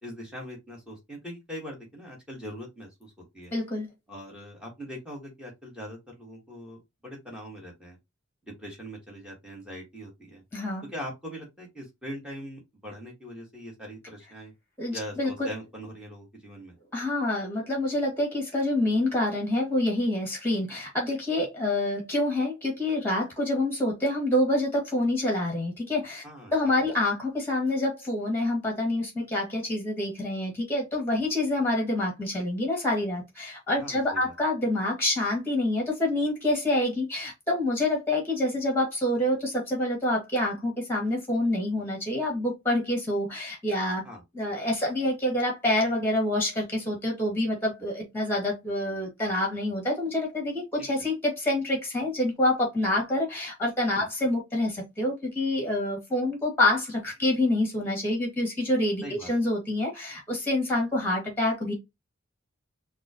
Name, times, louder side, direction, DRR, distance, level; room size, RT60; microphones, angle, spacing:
voice 1, 0.0-3.5 4.1-8.0 8.4-10.4 10.8-14.5 14.9-16.8 26.2-26.5 33.8-34.3 44.0-44.2 50.8-50.9 54.0-54.1 59.0-59.3, equal, 5° right, 1.8 m, -41 dB
voice 2, 3.5-3.9 10.5-10.8 14.8-15.3 16.9-26.2 26.5-44.0 44.3-61.7, left 1 dB, 10° left, 2.2 m, -27 dB
5.8 x 2.4 x 3.0 m
head